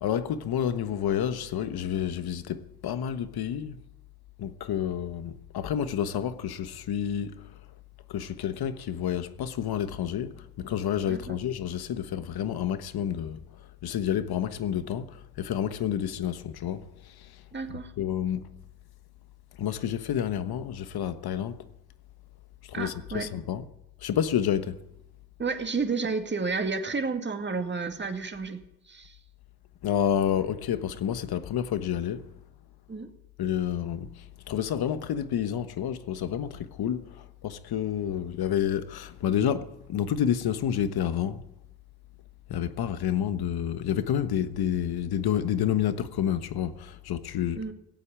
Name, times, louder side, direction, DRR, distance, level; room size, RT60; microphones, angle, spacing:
voice 1, 0.0-3.8 4.4-7.5 8.1-13.4 13.8-16.9 17.7-18.5 19.6-21.6 22.7-23.7 24.0-24.8 29.8-32.2 33.4-41.4 42.5-47.6, left 9 dB, 65° left, 1.3 m, -29 dB
voice 2, 11.0-11.4 17.5-17.9 22.7-23.3 25.4-29.2 32.9-33.1 47.6-47.7, right 4 dB, 25° right, 2.2 m, -31 dB
17.5 x 8.4 x 8.8 m
cardioid pair, 75°, 40 cm